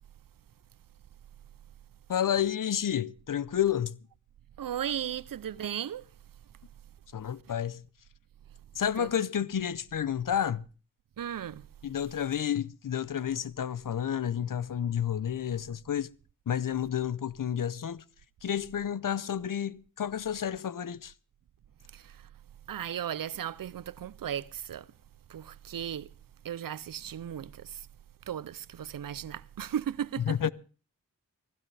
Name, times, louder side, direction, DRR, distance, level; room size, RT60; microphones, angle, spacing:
voice 1, 2.1-4.0 7.1-7.8 8.8-10.7 11.8-16.1 16.5-18.0 18.4-21.1 30.3-30.5, left 9 dB, 75° left, 0.7 m, -30 dB
voice 2, 4.6-6.0 9.0-9.1 11.2-11.6 21.9-22.1 22.7-24.9 25.3-26.1 26.4-27.8 28.3-30.4, right 9 dB, 90° right, 0.6 m, -36 dB
17.5 x 15.5 x 3.3 m
cardioid pair, 50°, 33 cm